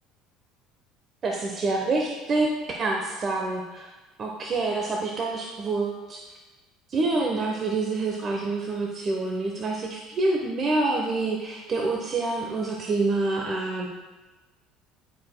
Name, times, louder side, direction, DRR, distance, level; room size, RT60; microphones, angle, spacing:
voice 1, 1.2-3.9 4.2-6.2 6.9-13.9, right 3 dB, 40° right, 0 dB, 0.8 m, -27 dB
13.0 x 4.9 x 2.2 m, 1.2 s
hypercardioid pair, 80°, 0 cm